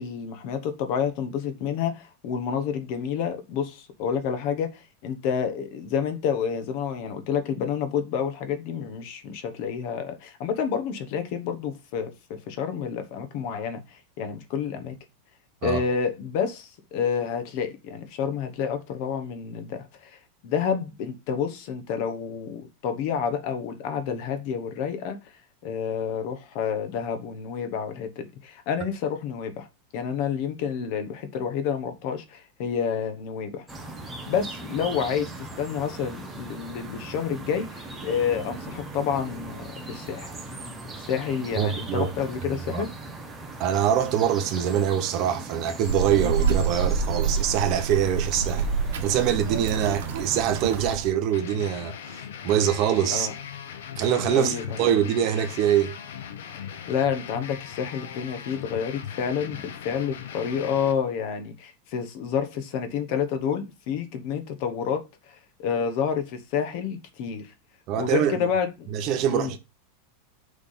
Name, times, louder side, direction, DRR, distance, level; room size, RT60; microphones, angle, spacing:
voice 1, 0.0-4.7 5.0-13.8 14.2-14.9 15.6-20.2 20.4-25.2 25.6-29.7 29.9-33.6 34.3-40.3 41.0-42.9 53.1-53.3 54.3-54.8 56.5-65.0 65.3-67.5 68.0-68.9 69.3-69.5, left 7 dB, 40° left, 1.1 m, -29 dB
sound 1, 33.7-51.0, right 2 dB, 5° right, 1.0 m, -39 dB
voice 2, 41.6-42.1 42.7-42.8 43.6-48.7 49.0-53.3 54.0-56.0 67.9-68.5 68.9-69.6, right 9 dB, 35° right, 1.0 m, -24 dB
Child speech kid speaking, 45.8-51.1, right 5 dB, 85° right, 1.2 m, -27 dB
sound 2, 51.3-60.9, left 8 dB, 80° left, 1.0 m, -39 dB
6.4 x 3.6 x 5.7 m
supercardioid pair, 175°, 0 cm